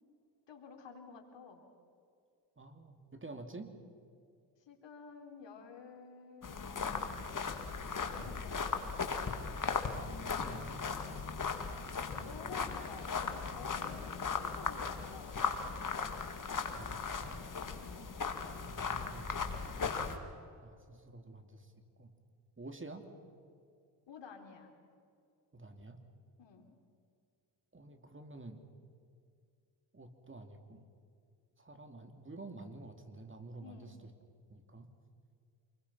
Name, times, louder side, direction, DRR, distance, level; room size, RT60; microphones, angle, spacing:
voice 1, 0.5-1.6 4.7-7.6 8.1-9.0 12.2-15.3 17.8-18.1 24.1-24.7 26.4-26.7 33.6-34.0, left 5 dB, 65° left, 4 dB, 4.0 m, -51 dB
voice 2, 2.6-3.7 8.2-8.5 10.4-10.8 12.1-12.7 14.8-14.9 16.7-17.4 18.6-19.6 20.6-21.7 22.0-22.1 22.6-23.1 25.5-26.0 27.7-28.6 29.9-30.9 31.6-34.1 34.5-34.9, right 2 dB, 25° right, 7 dB, 2.9 m, -50 dB
sound 1, 6.4-20.2, left 5 dB, 40° left, 2.6 m, -37 dB
28.0 x 22.0 x 5.7 m, 2.4 s
supercardioid pair, 60°, 47 cm